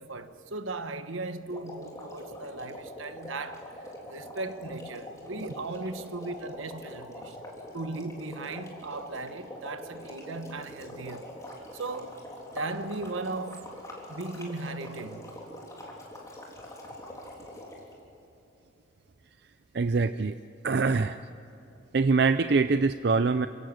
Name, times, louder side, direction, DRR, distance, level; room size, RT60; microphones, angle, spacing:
voice 1, 0.0-7.4 7.7-11.3 11.7-13.7 14.1-15.4, right 3 dB, 80° right, 1.2 m, -37 dB
sound 1, 1.5-17.9, left 1 dB, 15° left, 3.5 m, -44 dB
voice 2, 19.7-20.3 20.6-21.2 21.9-23.5, right 4 dB, 55° right, 0.5 m, -24 dB
27.5 x 17.0 x 7.9 m
head